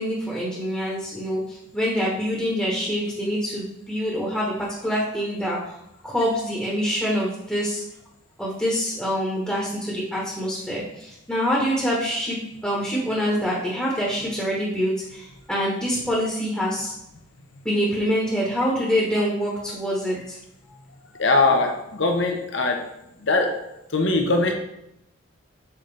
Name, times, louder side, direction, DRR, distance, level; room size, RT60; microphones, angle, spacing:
voice 1, 0.0-5.8 6.0-7.8 8.4-16.9 17.6-20.4, equal, 5° left, -5 dB, 1.1 m, -25 dB
voice 2, 21.1-22.9 23.2-24.5, left 3 dB, 60° left, 3 dB, 0.9 m, -22 dB
7.3 x 3.9 x 3.3 m, 0.84 s
head